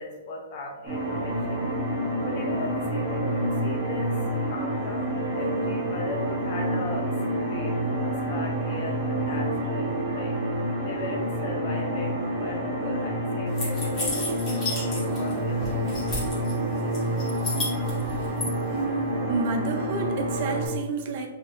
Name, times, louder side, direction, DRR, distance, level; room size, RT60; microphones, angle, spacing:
voice 1, 0.0-16.0, left 2 dB, 40° left, 0 dB, 0.7 m, -38 dB
sound 1, 0.8-20.7, right 1 dB, 10° right, 1.4 m, -28 dB
sound 2, 13.6-15.3 15.6-16.5 16.9-18.5, left 2 dB, 20° left, 1.0 m, -32 dB
voice 2, 18.7-21.3, right 4 dB, 40° right, 4 dB, 0.4 m, -30 dB
3.2 x 2.7 x 2.5 m, 1.0 s
hypercardioid pair, 160°, 0 cm